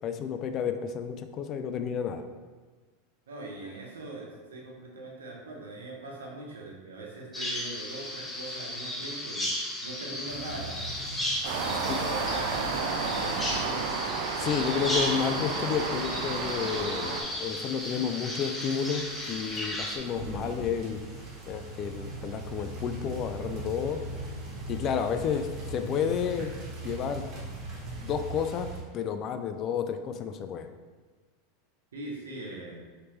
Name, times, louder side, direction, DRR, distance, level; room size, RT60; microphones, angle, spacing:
voice 1, 0.0-2.2 11.9-12.0 14.4-21.0 21.5-24.0 24.7-26.5 26.8-27.3 28.0-28.7 28.9-30.7, left 7 dB, 40° left, 8 dB, 0.3 m, -31 dB
voice 2, 3.3-9.5 9.8-10.8 11.6-14.0 31.9-32.8, right 2 dB, 90° right, -1 dB, 0.8 m, -41 dB
Bird vocalization bird call bird song, 7.3-20.0, left 1 dB, 15° left, 0.8 m, -35 dB
sound 1, 10.3-28.8, right 2 dB, 40° right, 1.2 m, -41 dB
sound 2, 11.4-17.2, right 5 dB, 65° right, 0.4 m, -31 dB
3.3 x 3.1 x 3.0 m, 1.4 s
hypercardioid pair, 105°, 0 cm